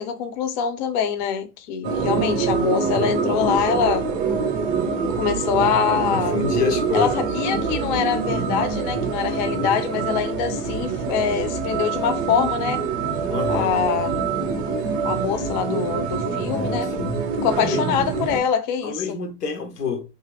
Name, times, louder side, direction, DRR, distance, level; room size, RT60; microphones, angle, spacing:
voice 1, 0.0-4.1 5.2-6.4 6.9-12.8 13.5-14.2 15.0-16.9 17.4-19.2, left 7 dB, 35° left, 0.4 m, -24 dB
sound 1, 1.8-18.4, right 5 dB, 30° right, 0.5 m, -25 dB
voice 2, 6.1-7.2 13.3-13.7 16.4-17.2 17.6-18.0 18.8-20.0, left 5 dB, 90° left, 0.9 m, -27 dB
2.5 x 2.4 x 3.1 m
hypercardioid pair, 110°, 46 cm